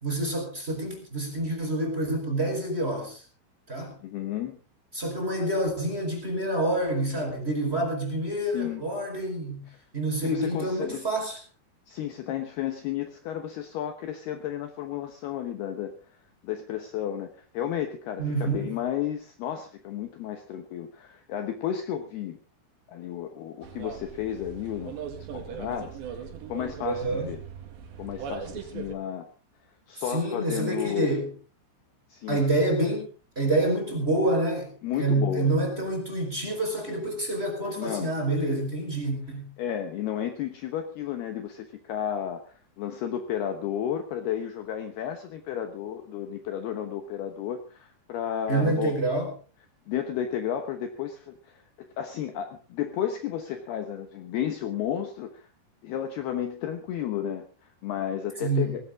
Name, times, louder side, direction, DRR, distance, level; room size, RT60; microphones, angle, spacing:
voice 1, 0.0-3.2 3.7-4.0 4.9-9.7 9.9-11.4 18.2-18.7 26.8-27.3 30.0-31.3 32.3-33.1 33.3-39.5 48.5-49.3 58.4-58.8, right 1 dB, 15° right, 1 dB, 4.4 m, -27 dB
voice 2, 4.0-4.6 8.4-8.8 10.2-11.1 11.9-15.9 16.4-22.4 22.9-25.0 25.3-27.4 28.0-29.3 29.9-31.1 32.1-32.4 34.8-35.5 37.8-38.1 39.6-48.9 49.9-55.5 55.8-58.9, left 10 dB, 70° left, 7 dB, 2.7 m, -32 dB
sound 1, 23.6-29.0, right 7 dB, 65° right, 4.1 m, -39 dB
18.5 x 16.5 x 3.7 m, 0.35 s
omnidirectional pair, 5.6 m